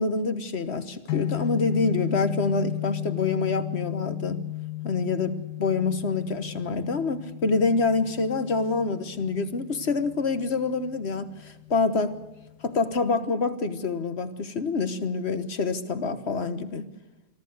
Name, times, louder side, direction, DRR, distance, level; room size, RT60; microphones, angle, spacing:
voice 1, 0.0-4.4 4.8-12.2 12.6-16.9, left 4 dB, 40° left, 11 dB, 1.3 m, -26 dB
sound 1, 1.1-13.2, left 18 dB, 75° left, 1.5 m, -35 dB
24.5 x 14.0 x 7.9 m, 1.1 s
omnidirectional pair, 1.9 m